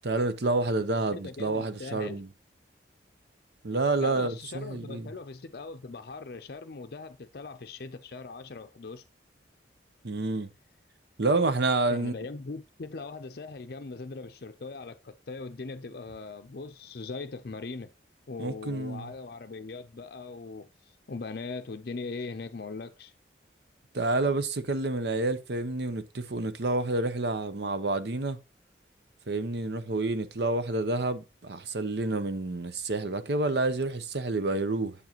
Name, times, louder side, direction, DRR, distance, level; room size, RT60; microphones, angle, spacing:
voice 1, 0.0-2.3 3.6-5.1 10.0-10.5 11.2-12.1 18.4-19.1 23.9-28.4 29.3-34.9, right 2 dB, 60° right, 0.8 m, -29 dB
voice 2, 1.1-2.2 4.0-9.0 11.9-17.9 18.3-23.1, left 3 dB, 55° left, 0.5 m, -40 dB
8.4 x 7.3 x 2.9 m
head